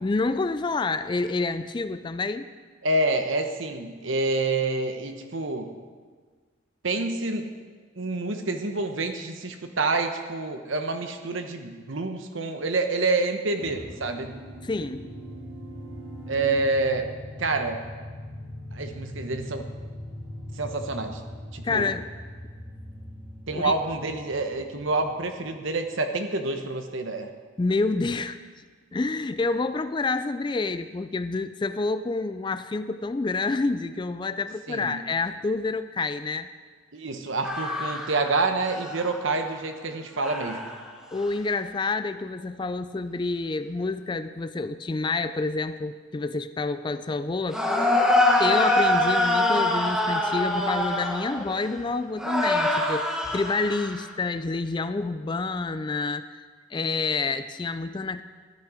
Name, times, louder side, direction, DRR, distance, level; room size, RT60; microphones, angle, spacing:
voice 1, 0.0-2.5 14.6-15.1 21.6-22.1 23.5-23.7 27.6-28.4 28.9-36.5 41.1-47.7 48.4-56.3 56.7-58.2, left 3 dB, 20° left, 11 dB, 0.3 m, -28 dB
voice 2, 2.8-5.7 6.8-7.5 8.0-14.4 16.3-17.1 17.4-17.8 18.7-19.7 20.6-21.2 21.5-21.9 23.5-27.3 34.7-35.0 36.9-40.7, right 3 dB, 70° right, 6 dB, 1.1 m, -27 dB
sound 1, 13.5-25.8, equal, 20° right, 2.2 m, -41 dB
sound 2, 37.4-39.4 40.2-40.9 41.2-41.3 47.5-51.8 52.2-54.1, left 1 dB, 5° right, 1.3 m, -25 dB
13.0 x 11.0 x 4.9 m, 1.5 s
head